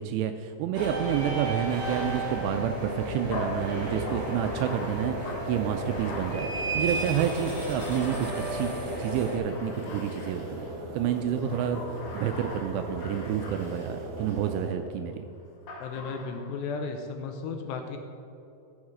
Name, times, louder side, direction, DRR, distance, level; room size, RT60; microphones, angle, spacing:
voice 1, 0.0-8.7 9.0-11.8 12.1-15.3, right 9 dB, 85° right, 7 dB, 2.5 m, -29 dB
sound 1, 0.7-9.4, right 1 dB, 25° right, 2.2 m, -33 dB
Bathtub (filling or washing), 1.7-8.9 9.5-10.8 11.3-14.5 15.7-16.6, left 2 dB, 60° left, 3.9 m, -42 dB
sound 2, 3.5-14.7, right 1 dB, 70° right, 1.7 m, -39 dB
voice 2, 11.4-11.8 15.8-18.0, left 4 dB, 80° left, 5 dB, 2.7 m, -35 dB
15.0 x 6.5 x 4.9 m, 2.8 s
omnidirectional pair, 5.3 m